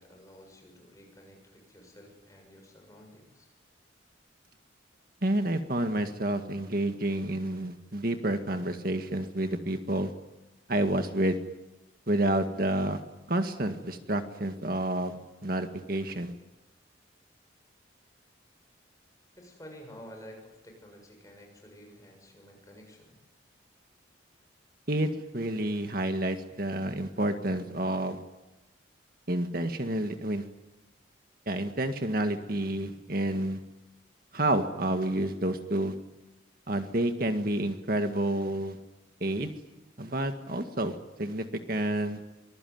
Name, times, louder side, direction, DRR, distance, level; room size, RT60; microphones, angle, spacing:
voice 1, 0.0-3.5 19.4-23.1, equal, 15° left, 2 dB, 7.1 m, -51 dB
voice 2, 5.2-10.1 10.7-11.4 12.1-13.0 13.3-15.2 15.4-16.3 24.9-28.2 29.3-30.5 31.5-33.6 34.3-35.9 36.7-38.8 39.2-39.5 40.0-42.2, right 1 dB, 50° right, 7 dB, 1.9 m, -29 dB
25.0 x 21.0 x 9.5 m, 0.99 s
head